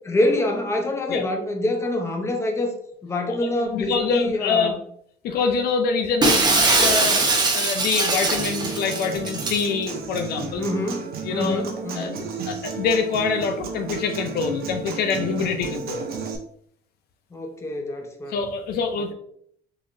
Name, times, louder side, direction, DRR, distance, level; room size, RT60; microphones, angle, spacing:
voice 1, 0.0-2.7 3.0-4.8 10.6-12.1 17.3-18.4 18.9-19.1, left 1 dB, 15° left, 3 dB, 0.7 m, -26 dB
voice 2, 3.3-4.8 5.2-7.2 7.5-10.6 11.3-11.6 12.0-12.1 12.5-16.1 18.3-19.1, left 5 dB, 70° left, 6 dB, 0.5 m, -25 dB
Shatter, 6.2-9.6, right 3 dB, 25° right, 0.8 m, -21 dB
Human voice / Acoustic guitar, 8.4-16.4, right 5 dB, 60° right, 0.7 m, -33 dB
3.9 x 2.9 x 2.6 m, 0.66 s
cardioid pair, 110°, 17 cm